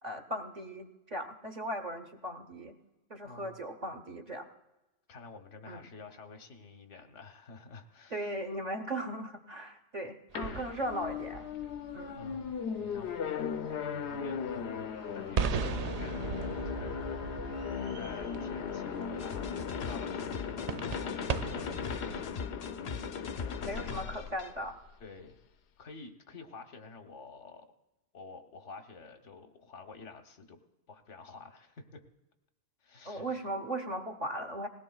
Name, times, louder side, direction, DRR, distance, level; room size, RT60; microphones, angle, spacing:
voice 1, 0.0-2.8 3.1-4.5 5.7-5.8 8.1-11.5 11.9-12.2 13.7-13.9 23.6-24.8 33.0-34.7, right 1 dB, 40° right, 4 dB, 1.0 m, -38 dB
voice 2, 3.2-3.6 5.1-8.4 12.1-13.1 13.9-22.2 23.3-24.3 25.0-25.4 25.8-27.7 28.1-30.6 30.9-32.0 32.8-33.4, left 4 dB, 90° left, 5 dB, 1.4 m, -49 dB
sound 1, 10.3-22.2, right 5 dB, 65° right, 0.4 m, -39 dB
sound 2, 10.4-24.9, left 7 dB, 70° left, 0.9 m, -37 dB
sound 3, 19.2-24.5, left 5 dB, 50° left, 0.5 m, -42 dB
20.0 x 17.5 x 2.3 m, 1.0 s
omnidirectional pair, 1.2 m